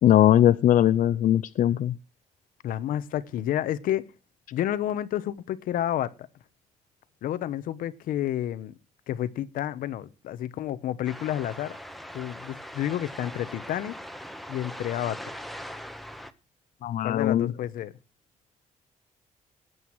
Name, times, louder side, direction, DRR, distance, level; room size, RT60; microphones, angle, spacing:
voice 1, 0.0-1.9 16.8-17.5, left 11 dB, 75° left, 0.6 m, -20 dB
voice 2, 2.6-4.1 4.5-6.1 7.2-8.7 9.1-11.8 12.1-14.0 14.5-15.2 17.0-17.9, left 11 dB, 90° left, 1.1 m, -30 dB
sound 1, 11.0-16.3, equal, ahead, 1.3 m, -41 dB
19.0 x 8.1 x 4.7 m
cardioid pair, 105°, 14 cm